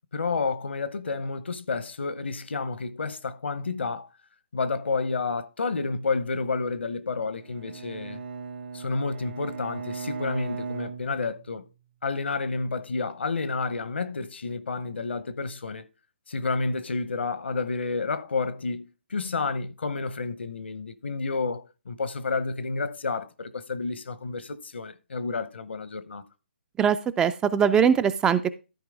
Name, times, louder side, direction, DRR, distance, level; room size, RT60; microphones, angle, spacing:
voice 1, 0.1-4.1 4.5-8.2 8.7-11.6 12.0-15.8 16.3-26.2, left 4 dB, 70° left, 0.9 m, -30 dB
Bowed string instrument, 7.4-11.8, right 5 dB, 60° right, 1.2 m, -38 dB
voice 2, 26.8-28.5, right 7 dB, 10° right, 0.3 m, -21 dB
13.0 x 4.8 x 3.6 m
figure-of-eight pair, 135°, 6 cm